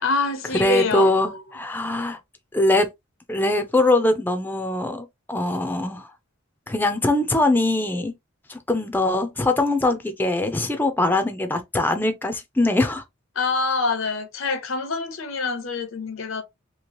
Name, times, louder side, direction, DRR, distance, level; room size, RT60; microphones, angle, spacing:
voice 1, 0.0-1.4 13.3-16.4, left 3 dB, 85° left, 0.8 m, -25 dB
voice 2, 0.5-2.2 2.5-2.9 3.3-6.1 6.7-8.1 8.5-13.0, left 2 dB, 10° left, 0.5 m, -22 dB
3.0 x 2.9 x 2.8 m
head